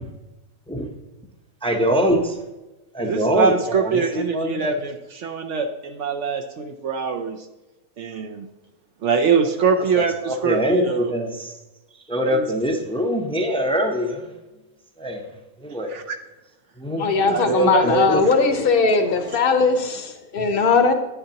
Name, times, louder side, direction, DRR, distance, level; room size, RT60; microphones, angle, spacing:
voice 1, 1.6-2.4 2.9-4.8 9.8-11.5 12.1-14.3 15.0-15.3 15.6-15.9 16.8-18.2 18.8-18.9, equal, 5° left, 3 dB, 0.6 m, -24 dB
voice 2, 3.0-7.4 8.0-8.5 9.0-11.1 12.3-12.4 15.9-16.2 17.3-18.1, right 5 dB, 65° right, 4 dB, 0.9 m, -23 dB
voice 3, 17.0-20.9, left 4 dB, 45° left, 6 dB, 1.0 m, -19 dB
10.0 x 9.1 x 2.9 m, 1.0 s
omnidirectional pair, 1.5 m